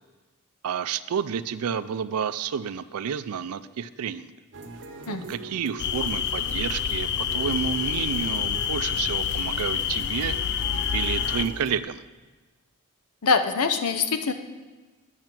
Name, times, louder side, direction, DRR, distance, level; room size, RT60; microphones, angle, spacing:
voice 1, 0.6-4.3 5.1-10.4 10.9-12.0, right 7 dB, 80° right, 14 dB, 0.4 m, -30 dB
sound 1, 4.5-11.8, right 3 dB, 55° right, 0.7 m, -42 dB
sound 2, 5.8-11.5, left 8 dB, 50° left, 0.3 m, -27 dB
voice 2, 13.2-14.3, left 4 dB, 80° left, 8 dB, 0.7 m, -23 dB
9.0 x 6.5 x 5.9 m, 1.2 s
head